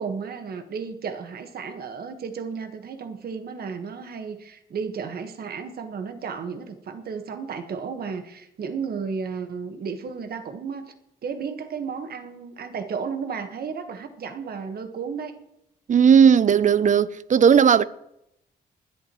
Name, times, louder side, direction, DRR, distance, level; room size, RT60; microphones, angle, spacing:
voice 1, 0.0-10.9 11.2-15.4, right 6 dB, 65° right, 1.6 m, -33 dB
voice 2, 15.9-17.8, right 7 dB, 45° right, 0.6 m, -16 dB
20.0 x 10.5 x 3.2 m
cardioid pair, 65°, 17 cm